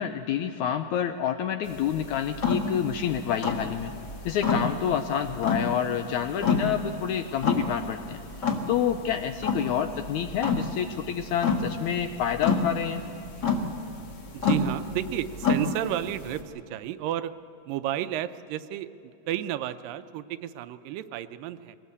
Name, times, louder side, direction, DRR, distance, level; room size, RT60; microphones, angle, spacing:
voice 1, 0.0-3.9 4.3-8.2 8.7-13.0, left 9 dB, 80° left, 8 dB, 1.7 m, -28 dB
sound 1, 1.6-16.4, left 4 dB, 40° left, 1.6 m, -30 dB
voice 2, 14.3-17.3 17.7-18.9 19.3-21.8, right 12 dB, 80° right, 12 dB, 2.3 m, -32 dB
23.0 x 18.5 x 8.2 m, 2.8 s
omnidirectional pair, 4.0 m